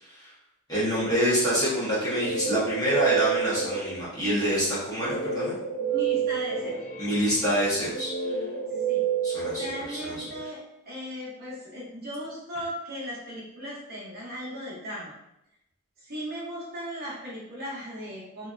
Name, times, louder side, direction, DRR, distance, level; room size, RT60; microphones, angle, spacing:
voice 1, 0.7-5.6 7.0-8.4 9.2-9.6 9.9-10.2, equal, 15° left, -9 dB, 1.3 m, -26 dB
Guitar, 1.7-4.2 5.0-10.4, right 6 dB, 35° left, 0.7 m, -30 dB
voice 2, 5.9-6.8 8.7-9.0 9.5-15.1 16.0-18.5, equal, 45° right, -5 dB, 0.8 m, -37 dB
3.0 x 2.7 x 2.5 m, 0.84 s
head